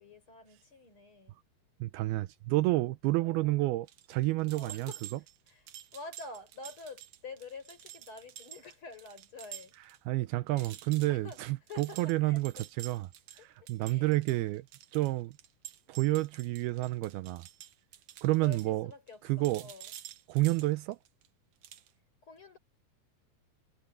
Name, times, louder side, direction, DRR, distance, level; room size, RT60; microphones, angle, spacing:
voice 1, 0.0-1.4 3.2-3.8 4.5-5.0 5.5-9.8 10.5-10.7 11.1-11.4 11.7-12.7 13.4-13.5 13.8-14.5 18.4-19.9 22.2-22.6, left 3 dB, 30° left, 5.7 m, -48 dB
voice 2, 1.8-4.9 10.1-13.1 13.4-14.7 14.9-15.4 15.9-17.5 18.2-18.9 19.2-19.7 20.3-21.0, right 19 dB, 80° right, 2.5 m, -30 dB
sound 1, 3.9-10.0 10.3-10.4 10.6-19.1 19.4-21.3 21.6-21.9, right 13 dB, 65° right, 2.0 m, -49 dB
omnidirectional pair, 4.6 m